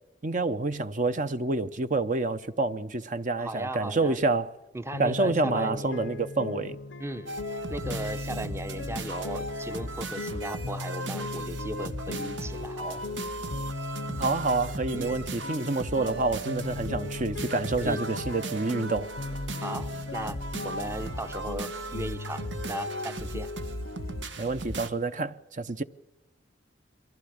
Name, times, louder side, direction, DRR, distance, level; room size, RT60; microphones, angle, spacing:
voice 1, 0.2-4.5 5.0-6.8 14.2-19.1 24.4-25.8, right 3 dB, 45° right, 0.8 m, -28 dB
voice 2, 3.4-4.2 4.7-6.1 7.0-7.3 7.7-13.0 14.9-15.2 17.8-18.0 19.6-20.4 20.6-23.5, right 1 dB, 15° right, 0.7 m, -37 dB
sound 1, 4.9-24.3, left 3 dB, 90° left, 0.7 m, -38 dB
sound 2, 7.3-24.9, right 1 dB, 85° right, 1.5 m, -37 dB
23.5 x 15.5 x 8.7 m
head